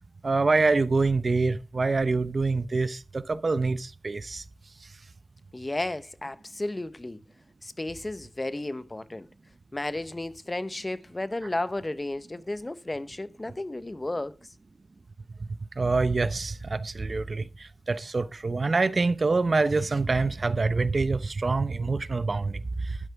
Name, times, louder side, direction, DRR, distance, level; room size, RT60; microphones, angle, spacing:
voice 1, 0.2-4.4 15.8-23.0, right 3 dB, 55° right, 0.9 m, -26 dB
voice 2, 5.5-7.2 7.6-9.3 9.7-14.5, left 2 dB, 30° left, 1.0 m, -33 dB
12.5 x 9.0 x 4.7 m
cardioid pair, 60°, 0 cm